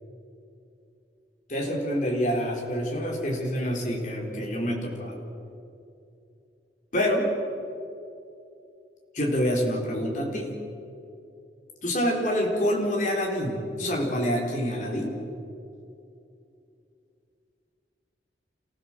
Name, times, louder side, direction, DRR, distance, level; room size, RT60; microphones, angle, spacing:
voice 1, 1.5-5.2 6.9-7.3 9.1-10.5 11.8-15.2, equal, 45° left, -1 dB, 4.5 m, -27 dB
28.5 x 16.0 x 7.8 m, 2.7 s
head